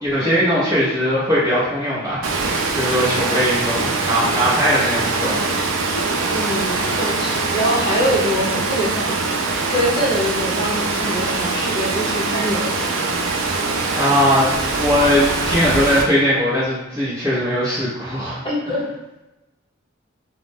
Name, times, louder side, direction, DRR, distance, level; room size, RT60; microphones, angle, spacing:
voice 1, 0.0-2.3 2.7-5.4 14.0-14.5 14.8-18.4, equal, 15° right, -12 dB, 0.8 m, -19 dB
Water, 2.2-16.0, right 3 dB, 85° right, 0.4 m, -22 dB
voice 2, 6.3-12.8 18.4-18.8, equal, 25° left, -6 dB, 0.8 m, -24 dB
2.4 x 2.0 x 3.4 m, 0.97 s
head